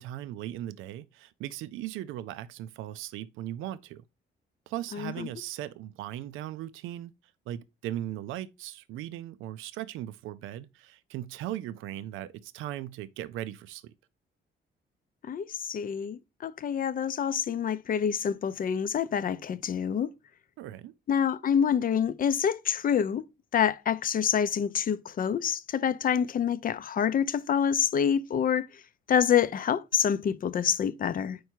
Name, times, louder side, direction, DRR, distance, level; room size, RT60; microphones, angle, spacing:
voice 1, 0.0-4.0 4.7-7.1 7.5-13.9 20.6-20.9, right 13 dB, 90° right, 0.4 m, -38 dB
voice 2, 4.9-5.3 15.2-20.1 21.1-23.2 23.5-28.7 29.1-31.4, left 8 dB, 45° left, 0.5 m, -27 dB
4.6 x 4.6 x 4.4 m
cardioid pair, 90°, 20 cm